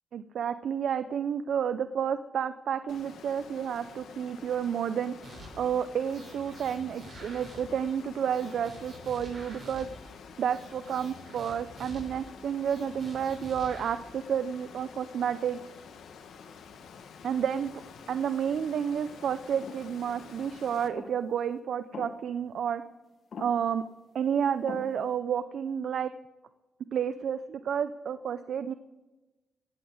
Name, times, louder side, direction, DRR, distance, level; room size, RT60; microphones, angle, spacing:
voice 1, 0.1-9.9 10.4-15.6 17.2-17.7 18.1-22.8 23.4-23.8 24.1-26.1 26.9-28.7, right 8 dB, 70° right, 11 dB, 0.5 m, -30 dB
Water, 2.9-20.9, left 6 dB, 80° left, 1.3 m, -49 dB
sound 1, 5.2-5.7 6.1-7.9 8.2-10.1 10.4-12.3 12.6-13.9, right 1 dB, 35° right, 6.4 m, -48 dB
sound 2, 19.6-19.9 20.9-21.3 21.9-22.4 23.3-23.8 24.7-25.2, left 5 dB, 50° left, 1.1 m, -43 dB
16.5 x 8.8 x 7.9 m, 1.1 s
wide cardioid pair, 150°, 0 cm